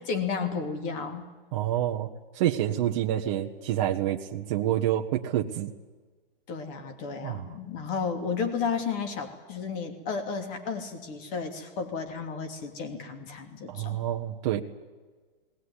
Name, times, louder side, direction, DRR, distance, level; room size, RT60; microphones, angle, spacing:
voice 1, 0.1-1.3 6.5-14.0, left 5 dB, 25° left, 6 dB, 2.9 m, -33 dB
voice 2, 1.5-5.7 7.2-7.5 13.7-14.6, right 12 dB, 35° right, 1 dB, 1.2 m, -28 dB
20.0 x 19.0 x 9.9 m, 1.3 s
hypercardioid pair, 155°, 29 cm